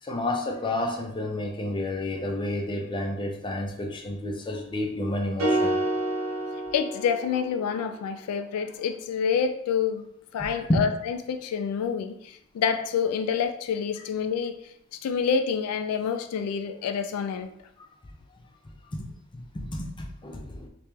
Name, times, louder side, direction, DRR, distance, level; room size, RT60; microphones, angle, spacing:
voice 1, 0.0-5.8 10.7-10.8 18.9-19.1 19.3-20.7, left 1 dB, 20° left, 2 dB, 0.5 m, -30 dB
sound 1, 5.4-7.7, right 1 dB, 70° right, 1.1 m, -28 dB
voice 2, 6.7-10.0 10.3-14.6 15.0-17.5, left 6 dB, 80° left, 8 dB, 0.3 m, -27 dB
3.2 x 2.9 x 3.2 m, 0.78 s
head